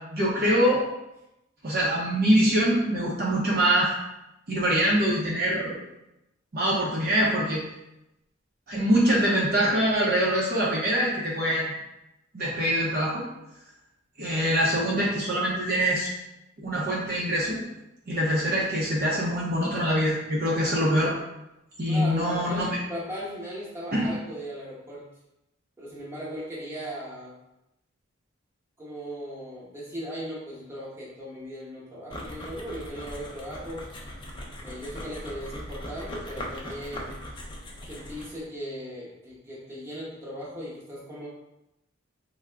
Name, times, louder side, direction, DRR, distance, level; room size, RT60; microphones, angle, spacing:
voice 1, 0.1-0.8 1.6-3.9 4.5-5.8 6.5-7.6 8.7-11.7 12.3-13.2 14.2-16.1 16.6-17.6 18.1-21.1 21.8-22.8 23.9-24.1, equal, 50° right, -5 dB, 0.6 m, -24 dB
voice 2, 21.9-25.0 25.8-27.3 28.8-33.8 34.6-37.2 37.9-41.3, equal, 15° right, -7 dB, 0.9 m, -37 dB
sound 1, 32.1-38.4, equal, 25° left, 0.5 m, -39 dB
3.5 x 2.0 x 3.3 m, 0.90 s
head